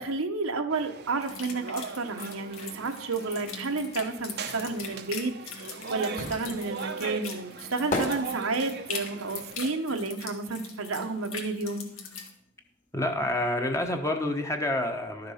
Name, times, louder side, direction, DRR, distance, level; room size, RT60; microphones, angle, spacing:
voice 1, 0.0-11.9, right 3 dB, 70° right, 5 dB, 1.1 m, -31 dB
sound 1, 0.7-9.7, right 5 dB, 50° right, 0.8 m, -40 dB
sound 2, 1.2-12.3, left 5 dB, 75° left, 1.8 m, -41 dB
sound 3, 5.4-11.1 11.4-13.0 13.3-13.4, left 2 dB, 35° left, 2.0 m, -36 dB
voice 2, 12.9-15.3, left 1 dB, 15° left, 4 dB, 1.1 m, -28 dB
12.0 x 6.8 x 5.7 m, 0.68 s
head